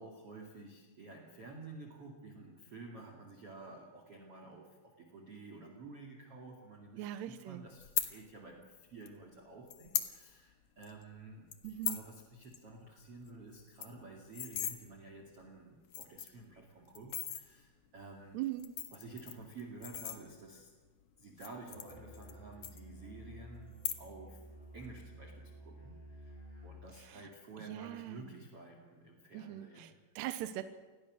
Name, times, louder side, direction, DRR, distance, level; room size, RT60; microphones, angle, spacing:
voice 1, 0.0-11.5 11.8-18.4 18.9-20.7 21.2-24.4 24.7-26.4 26.6-29.9, right 3 dB, 40° right, 2 dB, 2.7 m, -51 dB
voice 2, 7.0-7.6 11.6-12.0 18.3-18.7 27.0-27.3 27.6-28.4 29.3-30.6, right 13 dB, 75° right, 10 dB, 2.8 m, -41 dB
sound 1, 7.8-8.1 9.1-9.2 9.7-10.1 10.5-10.6 10.8-11.0 11.5-12.1 12.4-12.6 12.9-13.0 13.3-13.4 13.6-14.8 15.4-15.5 15.8-16.4 16.9-17.4 18.4-20.6 21.3-22.4 22.6-23.3 23.7-24.3 24.6-25.0, left 10 dB, 60° left, 2.2 m, -38 dB
Musical instrument, 21.7-26.8, right 1 dB, 25° left, 8.7 m, -52 dB
28.5 x 20.5 x 6.5 m, 1.3 s
omnidirectional pair, 5.5 m